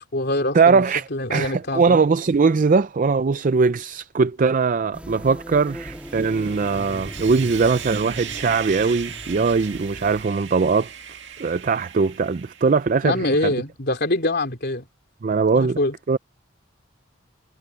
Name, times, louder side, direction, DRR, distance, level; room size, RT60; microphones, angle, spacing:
voice 1, 0.0-0.8 1.1-2.0 13.0-14.8 15.5-15.9, left 2 dB, 55° left, 3.2 m, -24 dB
voice 2, 0.5-10.9 11.4-13.5 15.2-15.8 16.1-16.2, right 4 dB, 40° right, 0.4 m, -20 dB
sound 1, 4.9-10.2, equal, 5° right, 1.8 m, -38 dB
Sawing, 5.6-13.1, right 8 dB, 65° right, 2.3 m, -38 dB
head